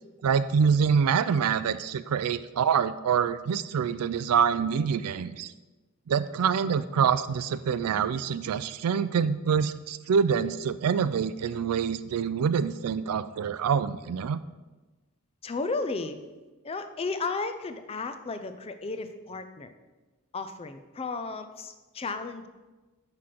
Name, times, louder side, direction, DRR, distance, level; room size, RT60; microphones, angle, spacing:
voice 1, 0.2-5.5 6.1-14.4, right 7 dB, 90° right, 14 dB, 0.4 m, -26 dB
voice 2, 15.4-16.2 16.6-19.7 20.3-22.5, left 3 dB, 25° left, 9 dB, 0.4 m, -34 dB
5.8 x 4.9 x 5.9 m, 1.2 s
head